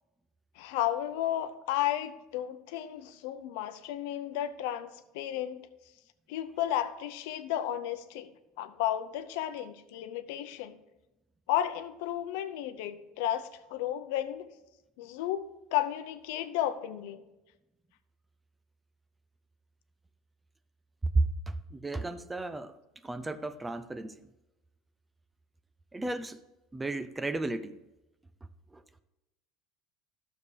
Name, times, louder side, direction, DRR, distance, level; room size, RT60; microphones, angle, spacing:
voice 1, 0.6-5.6 6.3-8.3 8.6-10.8 11.5-14.4 15.0-15.4 15.7-17.2, left 12 dB, 75° left, 0.6 m, -33 dB
voice 2, 21.1-22.7 23.0-24.2 25.9-26.4 26.7-27.8 28.7-28.8, right 2 dB, 10° right, 0.3 m, -33 dB
12.0 x 6.8 x 3.3 m
cardioid pair, 165°, 0 cm